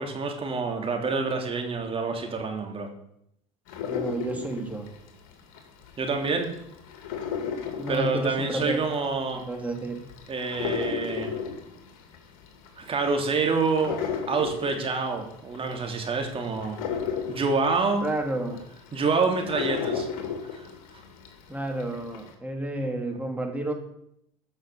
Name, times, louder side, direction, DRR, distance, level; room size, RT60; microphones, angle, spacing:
voice 1, 0.0-2.9 6.0-6.5 7.9-9.4 10.3-11.4 12.8-14.0 14.3-16.8 17.3-18.0 18.9-20.1 20.5-20.7, right 4 dB, 35° right, 3 dB, 2.8 m, -27 dB
sound 1, 3.7-5.9 6.3-21.4 21.8-22.3, left 7 dB, 65° left, 2.4 m, -34 dB
voice 2, 3.9-4.9 7.8-8.8 9.5-10.0 18.0-18.6 21.5-23.7, right 1 dB, 10° right, 3 dB, 3.0 m, -31 dB
14.0 x 6.4 x 7.0 m, 0.76 s
hypercardioid pair, 75°, 17 cm